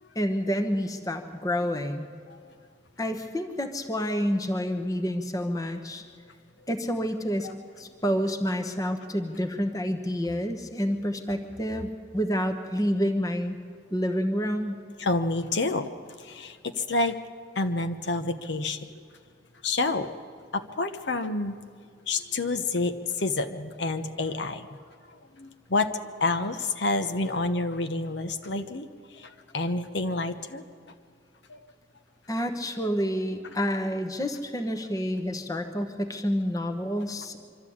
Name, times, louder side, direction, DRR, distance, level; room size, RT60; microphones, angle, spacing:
voice 1, 0.1-2.1 3.0-6.0 6.7-7.5 7.8-13.6 13.9-14.8 32.3-37.4, equal, 20° left, 6 dB, 1.1 m, -28 dB
voice 2, 15.0-15.9 16.2-17.2 17.6-18.9 19.6-20.1 20.5-21.6 22.1-24.8 25.3-25.9 26.2-28.9 29.2-30.6 31.5-31.6, left 3 dB, 70° left, 8 dB, 1.0 m, -28 dB
24.5 x 13.0 x 8.6 m, 2.3 s
head